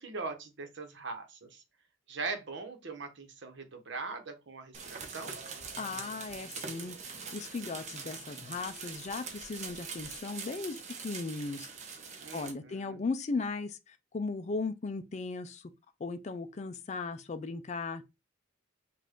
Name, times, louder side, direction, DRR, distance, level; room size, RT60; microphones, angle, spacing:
voice 1, 0.0-1.6 2.1-5.4 12.2-13.0, right 4 dB, 60° right, 1.0 m, -41 dB
sound 1, 4.7-12.5, right 5 dB, 35° right, 0.9 m, -43 dB
voice 2, 5.8-11.7 12.3-15.7 16.0-18.0, left 4 dB, 35° left, 0.4 m, -37 dB
5.5 x 2.5 x 3.7 m
head